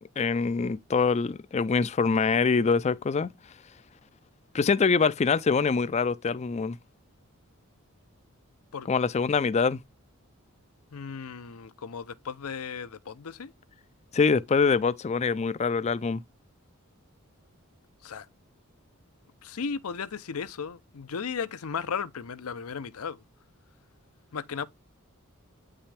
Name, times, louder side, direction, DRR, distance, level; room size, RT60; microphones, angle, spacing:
voice 1, 0.2-3.3 4.5-6.8 8.9-9.8 14.1-16.2, left 5 dB, 30° left, 0.3 m, -24 dB
voice 2, 10.9-13.5 18.0-18.3 19.4-23.2 24.3-24.7, left 6 dB, 85° left, 0.6 m, -35 dB
8.9 x 5.6 x 3.3 m
head